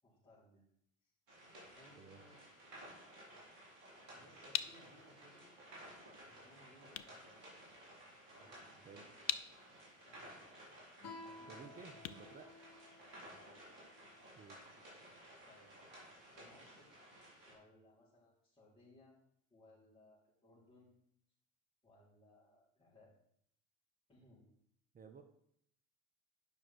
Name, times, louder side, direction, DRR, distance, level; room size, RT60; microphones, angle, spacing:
voice 1, 0.0-0.6 1.0-1.1 1.7-2.4 4.1-5.5 6.3-7.4 8.3-9.4 10.0-10.6 11.2-11.9 13.2-13.5 15.4-15.7 16.3-16.9 17.4-19.2 19.5-20.9 21.8-23.1 24.1-24.5, left 1 dB, 15° left, -13 dB, 4.3 m, -65 dB
sound 1, 1.3-17.5, right 1 dB, 55° right, 4.2 m, -56 dB
sound 2, 4.5-13.3, left 12 dB, 60° left, 0.6 m, -47 dB
Guitar, 11.0-14.3, left 3 dB, 40° left, 2.4 m, -55 dB
voice 2, 11.5-12.5 14.4-14.6 24.9-25.2, right 5 dB, 25° right, 6 dB, 0.7 m, -55 dB
9.5 x 5.9 x 4.7 m, 0.70 s
figure-of-eight pair, 65°, 38 cm